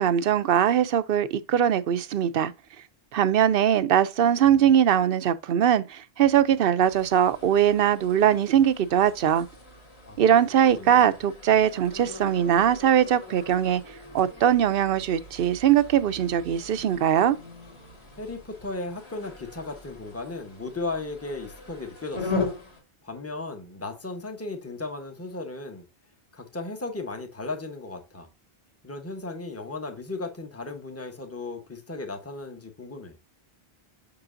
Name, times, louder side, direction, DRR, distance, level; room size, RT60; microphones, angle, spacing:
voice 1, 0.0-2.5 3.1-9.5 10.2-13.8 14.1-17.4, right 9 dB, 65° right, 0.8 m, -21 dB
sound 1, 6.8-22.8, left 3 dB, 80° left, 2.6 m, -40 dB
voice 2, 10.1-10.4 10.8-11.1 18.2-22.5 23.0-25.8 26.3-28.3 28.8-33.2, left 3 dB, 15° left, 1.1 m, -36 dB
6.8 x 6.1 x 2.6 m
omnidirectional pair, 1.1 m